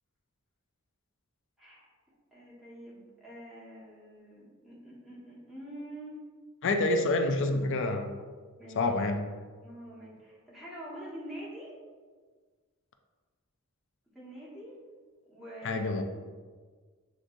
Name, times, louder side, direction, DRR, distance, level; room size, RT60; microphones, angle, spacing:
voice 1, 1.6-1.9 2.3-6.2 8.6-8.9 9.6-11.8 14.1-14.8 15.3-16.0, right 1 dB, ahead, -8 dB, 1.3 m, -45 dB
voice 2, 6.6-8.1 8.8-9.2 15.6-16.0, left 2 dB, 60° left, 5 dB, 0.4 m, -27 dB
7.5 x 2.6 x 2.6 m, 1.5 s
head